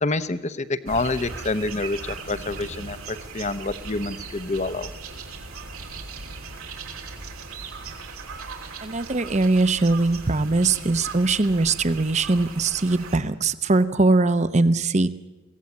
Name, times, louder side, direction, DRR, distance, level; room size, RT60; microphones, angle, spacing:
voice 1, 0.0-4.9, left 2 dB, 35° left, 13 dB, 0.8 m, -27 dB
sound 1, 0.9-13.2, right 4 dB, 90° right, 3.2 m, -38 dB
voice 2, 8.8-15.1, right 3 dB, 35° right, 13 dB, 0.8 m, -21 dB
22.5 x 16.5 x 8.5 m, 1.2 s
head